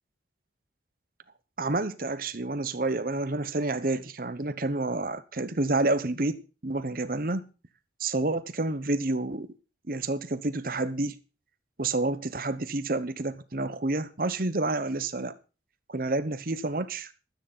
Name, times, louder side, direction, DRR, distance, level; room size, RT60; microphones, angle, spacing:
voice 1, 1.6-7.5 8.0-9.5 9.9-11.2 11.8-15.4 15.9-17.1, right 2 dB, 50° right, 1.0 m, -29 dB
12.5 x 9.4 x 5.6 m
head